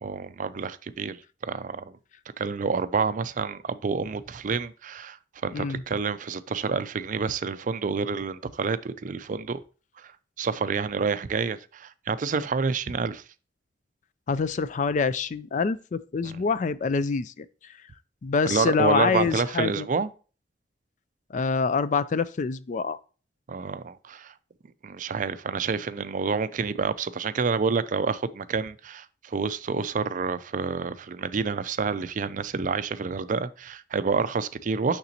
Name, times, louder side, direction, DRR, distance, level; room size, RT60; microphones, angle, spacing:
voice 1, 0.0-1.8 2.4-5.2 5.4-9.6 10.4-13.2 16.2-16.4 18.4-20.1 23.5-24.3 24.8-35.0, right 5 dB, 45° right, 0.4 m, -28 dB
voice 2, 14.3-17.5 18.2-19.9 21.3-23.0, left 5 dB, 45° left, 0.4 m, -26 dB
6.7 x 6.0 x 2.9 m
head